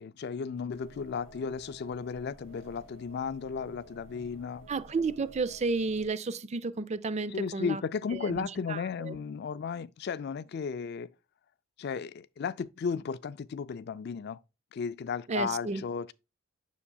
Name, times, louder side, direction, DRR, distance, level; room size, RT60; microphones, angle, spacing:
voice 1, 0.0-4.7 7.3-11.1 11.8-14.4 14.7-16.1, left 6 dB, 50° left, 0.3 m, -34 dB
sound 1, 0.7-6.1, right 2 dB, 70° right, 1.3 m, -53 dB
voice 2, 4.7-7.8 8.1-9.2 15.3-15.8, right 3 dB, 30° right, 0.4 m, -32 dB
7.1 x 6.4 x 2.3 m
head